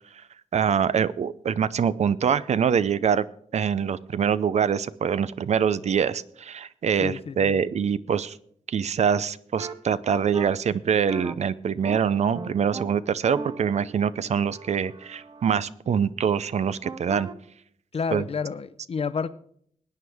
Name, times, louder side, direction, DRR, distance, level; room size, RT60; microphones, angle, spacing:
voice 1, 0.5-3.2 3.5-8.3 8.7-17.3 18.1-18.2, right 7 dB, 60° right, 16 dB, 0.5 m, -24 dB
voice 2, 7.0-7.6 17.9-19.3, left 5 dB, 50° left, 13 dB, 0.6 m, -30 dB
sound 1, 9.6-9.7 10.3-10.5 11.1-11.3 11.8-12.0 12.3-12.8 13.3-15.6 16.8-17.3, right 3 dB, 35° right, 0.8 m, -37 dB
20.5 x 9.4 x 3.5 m, 0.65 s
wide cardioid pair, 160°, 13 cm